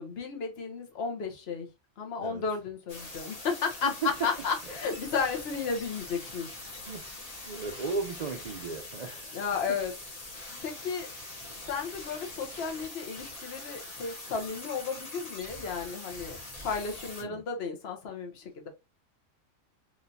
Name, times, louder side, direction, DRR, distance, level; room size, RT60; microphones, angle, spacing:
voice 1, 0.0-1.7 2.0-3.9 4.2-6.5 9.3-9.9 10.6-11.1 11.7-16.4 16.6-18.7, left 5 dB, 55° left, 1.1 m, -33 dB
sound 1, 2.9-17.2, left 2 dB, 30° left, 1.1 m, -43 dB
voice 2, 7.5-9.4 17.2-17.4, right 4 dB, 65° right, 0.4 m, -35 dB
4.0 x 3.1 x 2.6 m
omnidirectional pair, 1.4 m